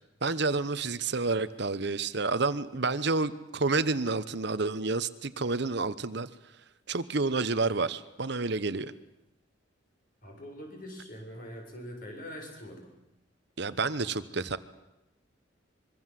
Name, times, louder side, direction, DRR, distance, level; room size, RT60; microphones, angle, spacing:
voice 1, 0.2-6.3 6.9-8.9 13.6-14.6, right 3 dB, 60° right, 14 dB, 1.0 m, -29 dB
voice 2, 10.2-12.9, equal, 45° left, 2 dB, 7.3 m, -43 dB
25.0 x 23.0 x 7.7 m, 0.91 s
head